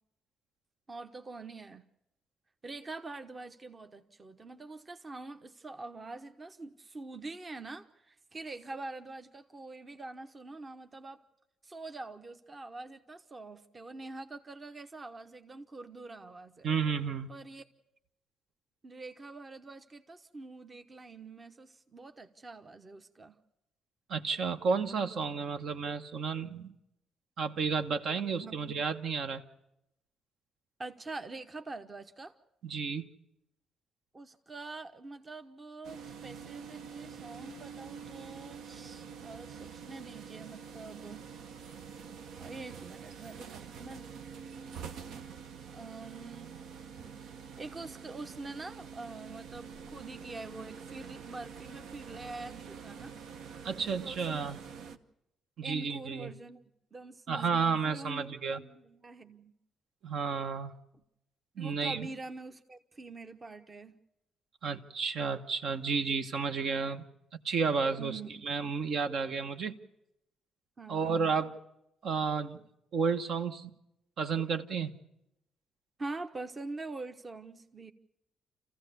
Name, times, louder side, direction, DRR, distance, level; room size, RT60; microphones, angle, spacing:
voice 1, 0.9-1.8 2.6-11.2 11.6-16.7 17.3-17.6 18.8-23.4 28.4-28.6 30.8-32.3 34.1-41.2 42.4-44.1 44.4-44.5 45.7-46.6 47.6-53.1 53.8-54.5 55.6-56.6 56.9-57.5 57.8-59.5 61.6-64.0 68.0-68.5 70.8-71.3 76.0-77.9, right 3 dB, 30° right, 1.0 m, -45 dB
voice 2, 16.6-17.3 24.1-26.7 27.4-29.4 32.6-33.1 47.0-47.1 53.6-54.6 55.6-56.3 57.3-58.6 60.0-60.7 61.6-62.1 64.6-67.0 67.4-69.7 70.9-71.5 72.0-72.6 72.9-73.7 74.2-74.9, right 5 dB, 65° right, 1.2 m, -32 dB
sound 1, 35.8-55.0, right 6 dB, 80° right, 0.9 m, -46 dB
27.5 x 15.0 x 6.9 m
cardioid pair, 90°, 0 cm